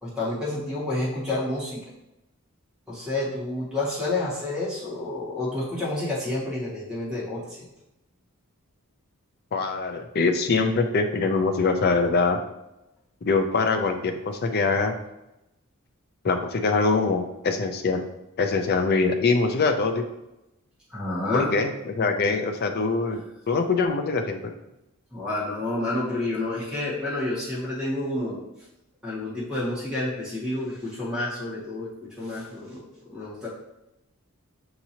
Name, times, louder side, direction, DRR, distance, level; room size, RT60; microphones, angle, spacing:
voice 1, 0.0-1.8 2.9-7.6 20.9-21.5 25.1-28.4 29.0-31.9 32.2-32.8 33.1-33.5, left 2 dB, 5° right, -8 dB, 1.5 m, -29 dB
voice 2, 9.5-12.4 13.2-14.9 16.2-18.0 18.4-20.0 21.3-24.5, left 4 dB, 45° left, 6 dB, 0.4 m, -23 dB
5.9 x 2.9 x 2.7 m, 0.91 s
head